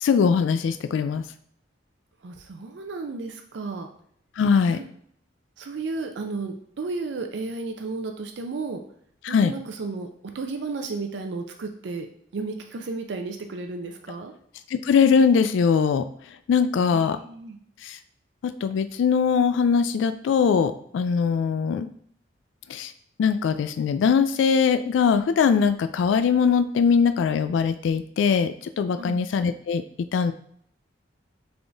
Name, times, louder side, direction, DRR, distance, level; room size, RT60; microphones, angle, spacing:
voice 1, 0.0-1.2 4.4-4.8 9.2-9.5 14.8-16.1 16.5-17.2 17.8-18.0 18.4-21.9 22.7-22.9 23.2-29.8 30.1-30.3, left 6 dB, 85° left, 11 dB, 0.3 m, -21 dB
voice 2, 2.2-3.9 4.7-4.8 5.6-8.8 9.3-10.1 10.3-12.1 12.3-14.3 16.8-17.6 29.0-29.2, right 3 dB, 70° right, 5 dB, 0.4 m, -33 dB
3.5 x 3.4 x 3.9 m, 0.64 s
head